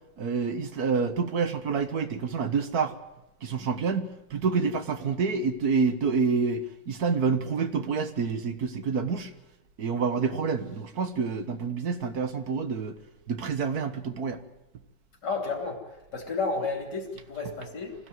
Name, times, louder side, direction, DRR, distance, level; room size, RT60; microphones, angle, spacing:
voice 1, 0.2-2.9 3.4-9.3 9.8-13.0 13.3-14.4, right 5 dB, 55° right, 1.9 m, -28 dB
voice 2, 15.2-15.8 16.1-18.0, left 4 dB, 65° left, 4.0 m, -31 dB
25.0 x 16.0 x 9.5 m
omnidirectional pair, 2.0 m